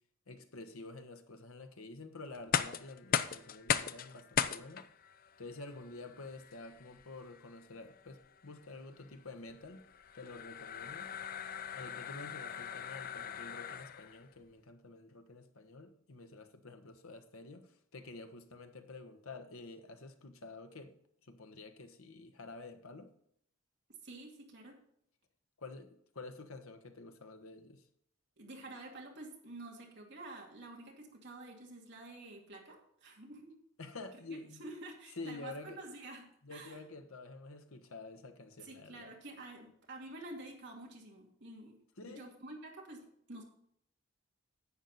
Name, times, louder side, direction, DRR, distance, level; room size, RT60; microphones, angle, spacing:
voice 1, 0.3-4.9 5.4-9.8 10.1-11.1 11.7-20.9 21.2-23.1 25.6-27.9 33.8-34.6 35.2-35.8 36.4-39.1 42.0-42.3, left 3 dB, 85° left, 8 dB, 1.2 m, -49 dB
sound 1, 2.3-14.2, left 8 dB, 40° left, 0.4 m, -39 dB
voice 2, 24.0-24.8 28.4-33.6 34.3-36.8 38.6-41.8 42.0-43.4, right 2 dB, 55° right, 0 dB, 2.4 m, -49 dB
11.0 x 7.9 x 4.1 m, 0.68 s
head